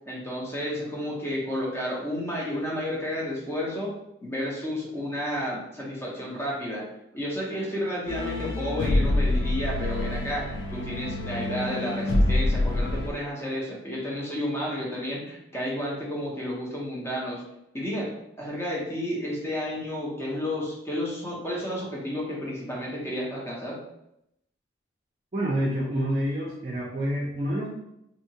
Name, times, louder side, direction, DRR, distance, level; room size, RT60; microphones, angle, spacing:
voice 1, 0.1-3.9 4.2-6.9 7.1-17.4 17.7-23.8, equal, 15° left, -4 dB, 0.6 m, -31 dB
sound 1, 8.1-13.1, left 1 dB, 85° left, 0.4 m, -26 dB
voice 2, 25.3-27.7, equal, 40° right, -4 dB, 0.5 m, -27 dB
2.7 x 2.3 x 2.8 m, 0.82 s
head